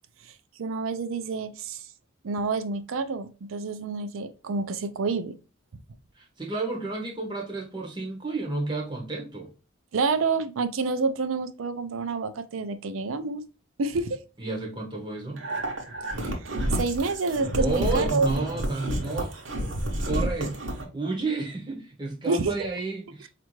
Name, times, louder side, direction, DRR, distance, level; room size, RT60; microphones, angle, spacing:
voice 1, 0.6-1.8 2.2-5.3 9.9-13.4 13.8-14.2 16.8-18.4 22.3-22.5, right 4 dB, 85° right, 0.4 m, -28 dB
voice 2, 6.2-9.5 14.4-15.5 17.5-19.3 20.0-20.6 20.9-23.3, right 3 dB, 25° right, 0.6 m, -31 dB
sound 1, 15.4-20.9, right 1 dB, 65° right, 0.8 m, -30 dB
4.3 x 2.5 x 3.0 m
head